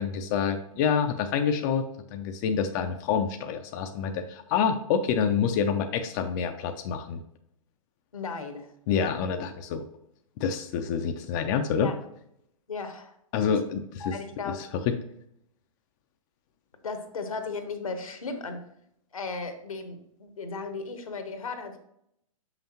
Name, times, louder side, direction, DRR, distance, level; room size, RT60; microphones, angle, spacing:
voice 1, 0.0-7.2 8.9-9.8 10.4-11.9 13.3-14.1 14.5-15.0, left 7 dB, 35° left, 6 dB, 0.4 m, -27 dB
voice 2, 8.1-8.7 11.8-12.0 12.7-13.2 14.0-14.6 16.8-18.6 19.1-21.8, left 4 dB, 75° left, 7 dB, 1.1 m, -35 dB
6.6 x 5.7 x 2.9 m, 0.76 s
figure-of-eight pair, 115°, 18 cm